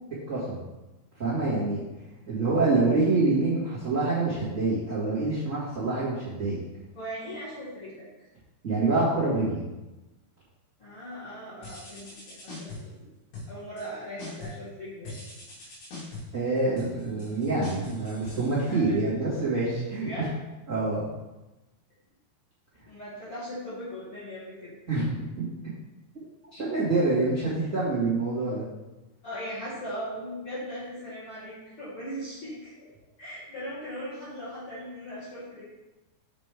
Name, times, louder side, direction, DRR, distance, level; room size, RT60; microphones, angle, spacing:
voice 1, 0.3-0.6 1.2-1.8 2.3-6.6 8.6-9.6 16.3-20.1 20.7-21.1 24.9-25.1 25.4-25.5 26.5-28.7, right 3 dB, 65° right, -11 dB, 0.7 m, -26 dB
voice 2, 6.9-8.1 10.8-13.1 13.5-15.1 15.6-15.7 18.6-19.0 20.0-20.3 22.8-24.7 29.2-32.9 33.2-35.6, equal, 55° left, -10 dB, 1.5 m, -39 dB
sound 1, 11.6-13.0 13.3-13.9 14.2-14.7 15.0-19.1, left 2 dB, 70° left, 4.1 m, -42 dB
7.5 x 5.2 x 3.5 m, 1.1 s
omnidirectional pair, 5.0 m